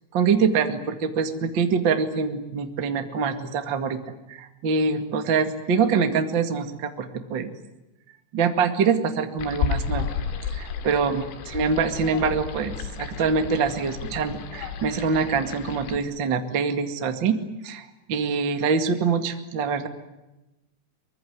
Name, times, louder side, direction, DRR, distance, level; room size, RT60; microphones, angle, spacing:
voice 1, 0.1-4.0 4.3-7.5 8.3-10.1 10.5-11.2 11.5-17.4 17.6-19.9, right 5 dB, 60° right, 7 dB, 1.2 m, -24 dB
sound 1, 9.4-16.0, left 6 dB, 80° left, 4.6 m, -32 dB
24.5 x 23.0 x 9.4 m, 0.99 s
omnidirectional pair, 5.8 m